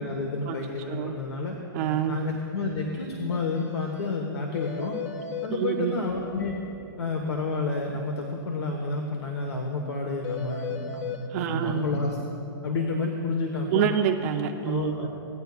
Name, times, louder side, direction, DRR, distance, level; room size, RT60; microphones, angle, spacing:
voice 1, 0.0-1.6 2.1-5.0 5.4-6.5 7.0-12.2 12.6-13.9 14.6-15.1, left 3 dB, 85° left, 2 dB, 1.2 m, -30 dB
voice 2, 1.7-2.2 5.5-6.0 11.3-11.9 13.7-15.1, right 9 dB, 35° right, 3 dB, 0.5 m, -27 dB
sound 1, 3.3-3.4 3.7-3.8 4.1-4.2 4.5-5.5 10.2-11.2, left 7 dB, 35° left, 0.7 m, -35 dB
17.0 x 9.6 x 2.4 m, 2.8 s
hypercardioid pair, 150°, 13 cm